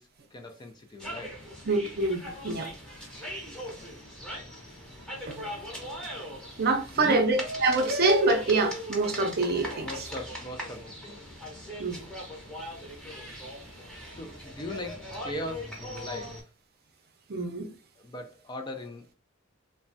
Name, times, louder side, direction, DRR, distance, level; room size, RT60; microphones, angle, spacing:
voice 1, 0.0-1.4 3.7-3.8 4.1-4.8 6.9-7.3 9.8-12.2 13.3-13.4 14.1-16.5 18.0-19.1, left 1 dB, 20° left, 0.3 m, -40 dB
sound 1, 1.0-16.4, equal, 5° left, 0.8 m, -39 dB
voice 2, 1.6-2.7 5.3-5.5 6.6-9.9 11.8-12.0 17.3-17.7, right 3 dB, 45° right, 0.6 m, -26 dB
3.2 x 2.1 x 2.5 m
head